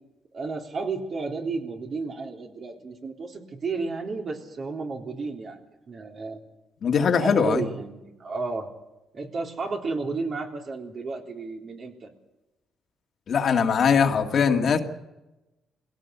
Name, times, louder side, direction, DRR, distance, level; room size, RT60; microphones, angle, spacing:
voice 1, 0.3-6.4 7.1-8.7 9.1-12.1, right 4 dB, 50° right, 2 dB, 3.6 m, -32 dB
voice 2, 6.8-7.6 13.3-14.8, left 6 dB, 55° left, 4 dB, 2.1 m, -21 dB
20.5 x 17.0 x 8.2 m, 1.0 s
cardioid pair, 90°, 0 cm